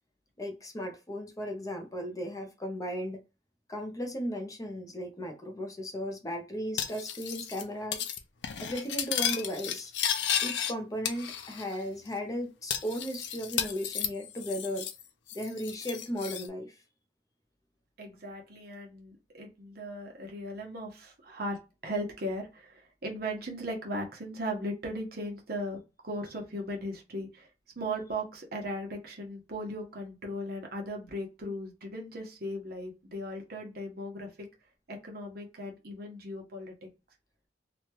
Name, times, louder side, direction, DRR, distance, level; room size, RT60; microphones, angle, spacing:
voice 1, 0.4-3.2 3.7-8.0 8.6-9.9 10.4-14.9 15.3-16.7, equal, 20° left, 0.6 m, -36 dB
Cutlery silverware, 6.8-7.6 7.9-8.2 8.4-10.7 11.1-11.8 12.1-12.2 12.7-15.0 15.3-16.5, left 9 dB, 80° left, 0.4 m, -33 dB
voice 2, 18.0-27.5 27.8-34.5 34.9-36.9, equal, 60° right, 1.0 m, -37 dB
2.9 x 2.3 x 2.9 m
head